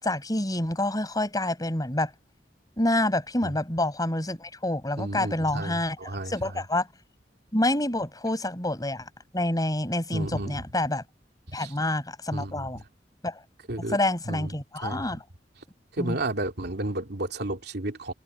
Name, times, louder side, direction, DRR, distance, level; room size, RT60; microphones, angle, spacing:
voice 1, 0.0-2.1 2.8-6.9 7.5-11.0 11.5-12.8 13.2-13.4 13.8-15.2 16.0-16.2, left 1 dB, 20° left, 5.4 m, -27 dB
voice 2, 5.0-6.3 10.1-10.6 11.5-11.7 12.3-12.7 13.7-14.0 14.3-14.5 14.8-15.0 16.0-18.1, right 1 dB, 60° right, 2.9 m, -32 dB
open air
head